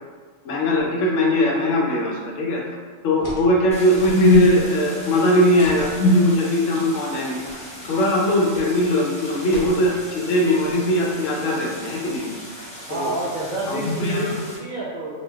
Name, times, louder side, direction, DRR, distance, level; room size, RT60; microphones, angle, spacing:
voice 1, 0.4-2.6 3.0-7.4 7.8-12.3 12.9-13.1 13.7-14.4, left 1 dB, 90° left, -1 dB, 1.0 m, -20 dB
sound 1, 3.2-3.5 3.8-4.9 5.6-6.0 7.4-7.6 7.9-8.0 8.5-8.8 9.5-10.1 10.6-11.1, left 1 dB, 60° left, 1.0 m, -38 dB
Stream, 3.7-14.6, equal, 10° left, 0.4 m, -38 dB
voice 2, 12.9-15.2, right 1 dB, 60° right, -7 dB, 0.5 m, -29 dB
4.1 x 2.3 x 2.3 m, 1.5 s
omnidirectional pair, 1.3 m